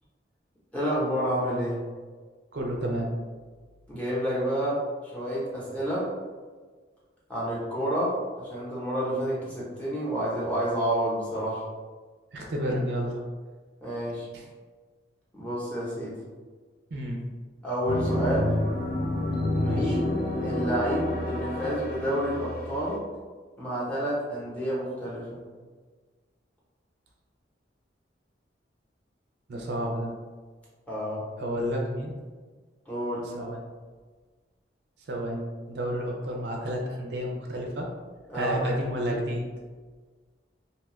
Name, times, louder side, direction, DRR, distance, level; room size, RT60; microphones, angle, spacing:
voice 1, 0.7-1.8 3.9-4.8 5.1-6.1 7.3-11.7 13.8-14.3 15.3-16.2 17.6-18.5 19.6-20.1 20.4-23.0 23.6-25.4 30.9-31.2 32.9-33.3 38.3-38.6, right 1 dB, 5° left, -8 dB, 0.8 m, -29 dB
voice 2, 2.5-3.1 12.3-13.2 14.3-14.4 16.9-17.2 19.6-20.0 29.5-30.2 31.4-32.1 33.3-33.6 35.1-37.9 38.3-39.4, equal, 60° right, 0 dB, 0.4 m, -30 dB
sound 1, 17.9-22.9, left 1 dB, 50° left, 0.5 m, -29 dB
2.7 x 2.3 x 3.0 m, 1.4 s
head